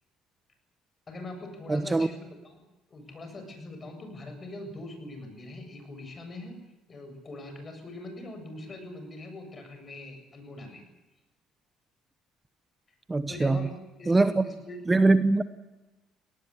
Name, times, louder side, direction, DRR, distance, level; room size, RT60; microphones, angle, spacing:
voice 1, 1.1-2.6 2.9-6.5 6.9-10.8 13.3-13.7 14.0-14.8, left 2 dB, 30° left, 6 dB, 7.7 m, -42 dB
voice 2, 1.7-2.1 13.1-13.6 14.1-14.4 14.9-15.4, right 3 dB, 15° right, 12 dB, 1.0 m, -22 dB
19.0 x 19.0 x 10.0 m, 1.1 s
cardioid pair, 100°, 0 cm